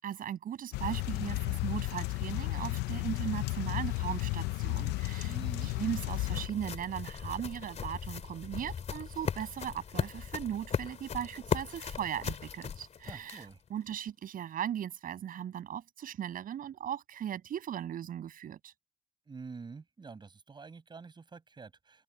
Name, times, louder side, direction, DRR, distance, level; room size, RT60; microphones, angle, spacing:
voice 1, 0.0-18.7, right 10 dB, 55° right, 7.4 m, -38 dB
sound 1, 0.7-6.5, left 21 dB, 85° left, 0.6 m, -33 dB
voice 2, 5.3-5.7 13.1-13.6 19.3-22.0, right 4 dB, 25° right, 6.5 m, -47 dB
sound 2, 5.4-13.7, left 7 dB, 40° left, 3.5 m, -38 dB
open air
cardioid pair, 110°, 17 cm